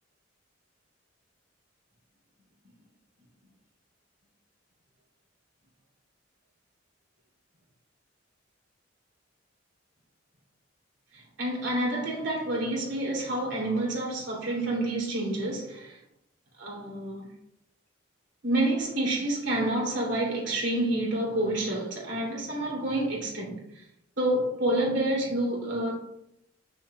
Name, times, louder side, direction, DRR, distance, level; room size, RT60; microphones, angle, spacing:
voice 1, 11.1-16.0 16.6-17.3 18.4-23.8 24.2-25.9, right 1 dB, 65° right, 2.6 m, -28 dB
7.9 x 6.3 x 2.2 m
head